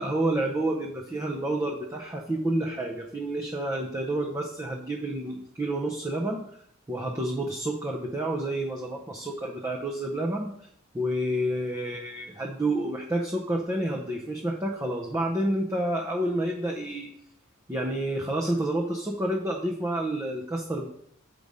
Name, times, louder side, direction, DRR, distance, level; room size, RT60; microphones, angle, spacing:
voice 1, 0.0-6.4 6.9-10.5 10.9-17.1 17.7-20.9, right 1 dB, 15° right, 0 dB, 0.6 m, -29 dB
6.7 x 5.3 x 4.9 m, 0.70 s
head